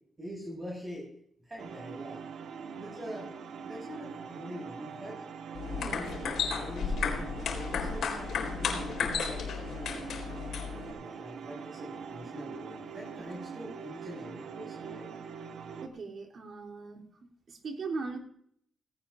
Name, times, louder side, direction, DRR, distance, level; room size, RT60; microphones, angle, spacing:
voice 1, 0.2-1.1 1.4-2.2 2.8-3.3 3.6-5.3 5.7-10.1 10.7-15.1, equal, 25° right, -1 dB, 5.9 m, -44 dB
sound 1, 1.6-15.9, right 6 dB, 75° right, 1.4 m, -43 dB
sound 2, 5.5-10.9, left 6 dB, 80° left, 3.8 m, -33 dB
voice 2, 5.7-6.3 13.2-13.3 15.8-17.0 17.5-18.2, right 4 dB, 50° right, 2 dB, 3.2 m, -39 dB
18.0 x 17.0 x 2.5 m, 0.66 s
cardioid pair, 120°, 0 cm